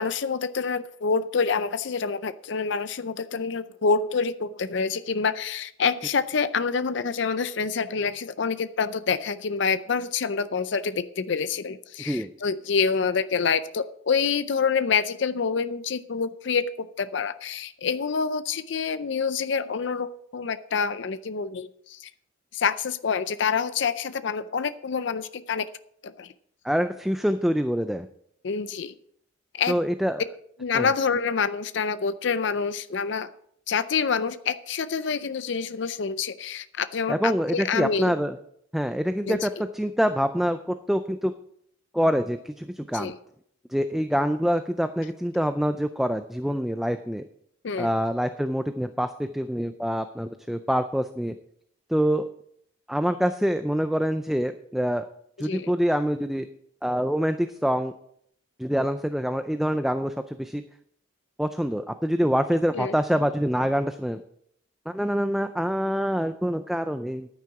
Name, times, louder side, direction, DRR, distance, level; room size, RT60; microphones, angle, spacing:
voice 1, 0.0-22.1 22.5-25.7 26.0-26.3 28.4-28.9 29.6-29.7 30.6-33.3 33.7-38.1 39.3-39.4 42.9-43.2 47.6-47.9 55.4-55.7 62.7-63.0, left 5 dB, 65° left, 13 dB, 0.5 m, -27 dB
voice 2, 26.6-28.1 29.7-30.2 30.7-30.9 37.1-38.4 38.7-41.3 41.9-43.1 43.7-47.2 47.8-51.3 51.9-52.2 52.9-55.0 55.4-56.5 56.8-57.9 58.6-60.6 61.4-64.2 64.9-67.3, equal, ahead, 9 dB, 0.3 m, -25 dB
10.5 x 9.4 x 4.8 m, 0.68 s
head